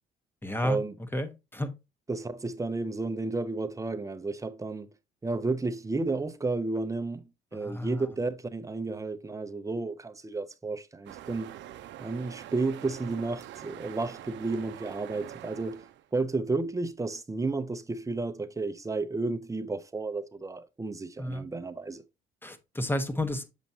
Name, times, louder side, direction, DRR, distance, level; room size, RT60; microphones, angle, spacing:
voice 1, 0.4-0.8 1.1-1.7 7.5-8.0 21.2-21.5 22.4-23.4, left 1 dB, 10° left, 1.0 m, -31 dB
voice 2, 2.1-4.9 5.2-11.5 12.0-15.9 16.1-22.0, right 3 dB, 15° right, 0.7 m, -32 dB
sound 1, 11.1-16.1, right 12 dB, 65° right, 0.6 m, -45 dB
7.2 x 5.1 x 2.7 m
supercardioid pair, 80°, 20 cm